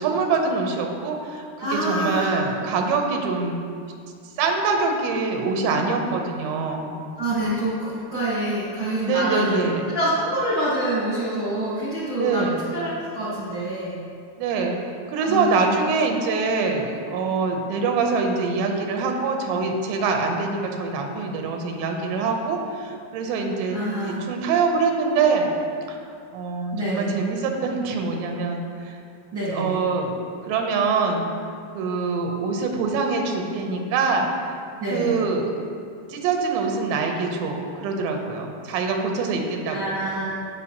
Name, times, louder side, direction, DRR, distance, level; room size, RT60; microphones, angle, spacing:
voice 1, 0.0-3.6 4.4-6.9 9.0-9.8 12.2-12.6 14.4-25.5 25.9-26.0 26.3-29.0 29.5-30.2 30.5-31.3 31.7-34.3 34.9-35.5 36.1-40.0, right 4 dB, 90° right, 3 dB, 3.2 m, -24 dB
voice 2, 1.6-2.4 7.2-9.6 9.9-13.9 15.2-15.7 23.7-24.2 26.7-27.1 29.3-29.8 34.8-35.1 39.7-40.3, right 1 dB, 60° right, -10 dB, 1.3 m, -26 dB
17.5 x 5.8 x 3.0 m, 2.3 s
omnidirectional pair, 5.0 m